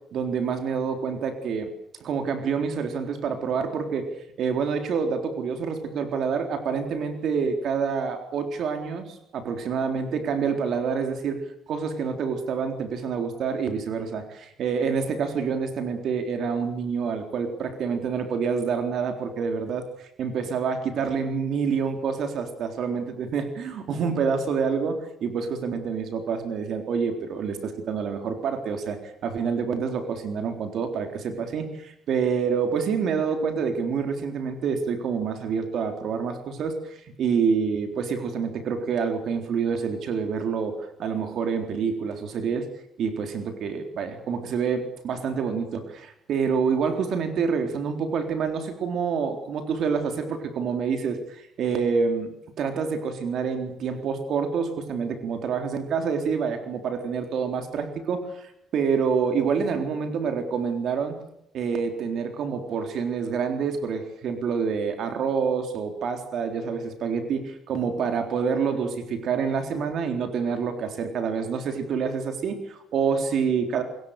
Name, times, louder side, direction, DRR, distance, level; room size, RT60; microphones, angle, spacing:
voice 1, 0.1-1.7 2.0-4.1 4.4-42.7 43.0-61.2 61.5-73.8, right 6 dB, 55° right, 6 dB, 3.8 m, -27 dB
27.0 x 22.0 x 6.7 m, 0.77 s
cardioid pair, 150°, 0 cm